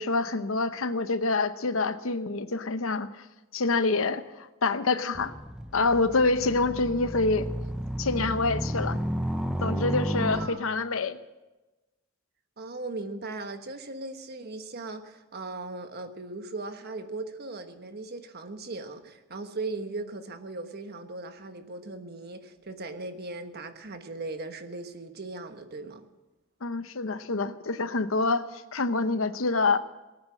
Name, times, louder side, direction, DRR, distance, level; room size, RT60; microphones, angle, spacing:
voice 1, 0.0-3.2 3.5-5.3 5.7-7.5 8.0-9.0 9.6-11.2 26.6-29.8, left 3 dB, 85° left, 12 dB, 0.9 m, -26 dB
sound 1, 5.1-10.5, equal, 5° right, 0.7 m, -32 dB
voice 2, 10.3-10.9 12.6-26.0, right 3 dB, 50° right, 7 dB, 1.3 m, -38 dB
18.5 x 9.5 x 7.5 m, 1.1 s
head